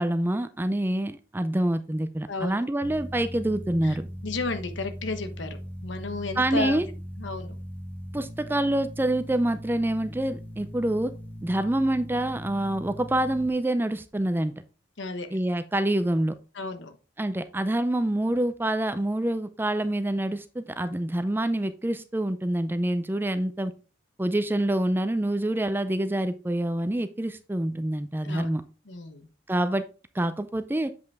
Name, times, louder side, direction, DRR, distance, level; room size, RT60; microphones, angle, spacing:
voice 1, 0.0-4.1 6.4-6.9 8.1-11.1 11.4-14.5 15.3-16.4 17.2-23.7 24.2-28.6 29.5-29.9 30.1-30.9, right 1 dB, 10° right, 0.4 m, -26 dB
sound 1, 2.8-13.5, equal, 10° left, 1.0 m, -40 dB
voice 2, 4.2-6.8 7.2-7.6 15.0-15.3 16.5-16.9 28.2-28.5 28.9-29.3, left 3 dB, 80° left, 1.1 m, -33 dB
7.9 x 5.4 x 3.4 m
head